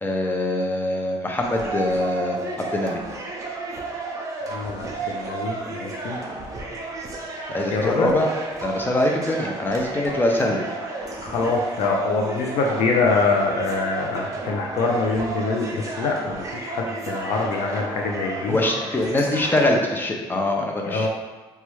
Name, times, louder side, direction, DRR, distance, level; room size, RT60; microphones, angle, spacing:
voice 1, 0.0-3.0 7.5-8.3 8.6-10.6 18.5-21.1, left 1 dB, 20° left, 1 dB, 0.4 m, -23 dB
sound 1, 1.4-19.7, right 3 dB, 30° right, 0.5 m, -32 dB
voice 2, 4.5-6.2 7.7-8.1 11.2-18.6 20.9-21.1, left 3 dB, 75° left, 0 dB, 0.4 m, -24 dB
3.1 x 2.3 x 3.0 m, 1.3 s
cardioid pair, 115°, 10 cm